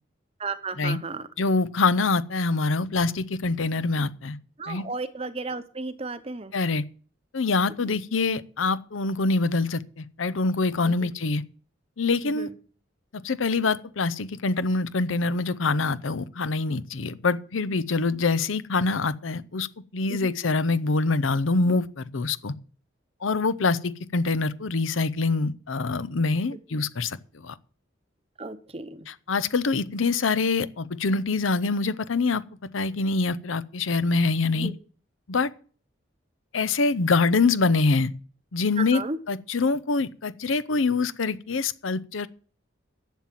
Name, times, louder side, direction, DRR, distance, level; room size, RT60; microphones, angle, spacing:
voice 1, 0.4-1.2 4.6-6.5 10.8-11.1 12.3-12.5 20.1-20.3 28.4-29.1 34.5-34.7 38.8-39.2, right 3 dB, 30° right, 0.9 m, -34 dB
voice 2, 1.4-4.4 4.7-4.9 6.5-6.8 7.3-11.4 12.0-12.5 13.1-19.7 19.9-22.5 23.2-27.2 27.4-27.5 29.1-32.4 32.7-34.7 35.3-35.5 36.5-38.1 38.5-42.3, left 3 dB, 90° left, 0.7 m, -25 dB
11.5 x 7.4 x 7.4 m
head